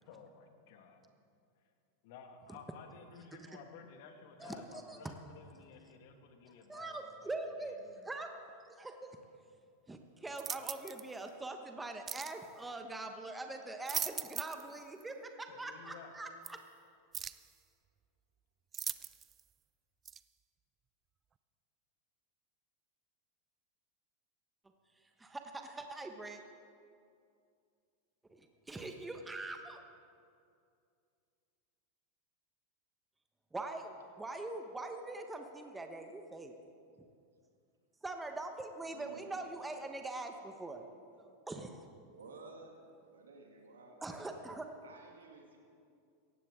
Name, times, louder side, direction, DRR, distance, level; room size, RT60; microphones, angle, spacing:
voice 1, 0.1-1.0 2.0-7.3 7.6-8.0 10.6-10.7 15.5-16.1, left 6 dB, 60° left, 5 dB, 1.8 m, -54 dB
voice 2, 4.4-5.0 6.7-7.7 8.0-8.3 8.7-9.1 9.9-16.6 25.2-26.4 28.3-28.4 28.7-29.8 33.5-36.5 38.0-40.8 41.2-41.8 44.0-44.7, right 2 dB, 10° right, 5 dB, 1.2 m, -43 dB
sound 1, 10.4-11.1 12.1-12.4 13.6-14.7 15.0-15.1 16.4-16.5 17.1-17.5 18.7-19.4 20.1-20.2, right 8 dB, 30° right, 0.4 m, -40 dB
voice 3, 38.8-39.3 42.1-42.8 43.1-44.1 44.8-45.6, right 4 dB, 85° right, 1 dB, 2.3 m, -54 dB
17.5 x 15.0 x 3.7 m, 2.4 s
hypercardioid pair, 95°, 0 cm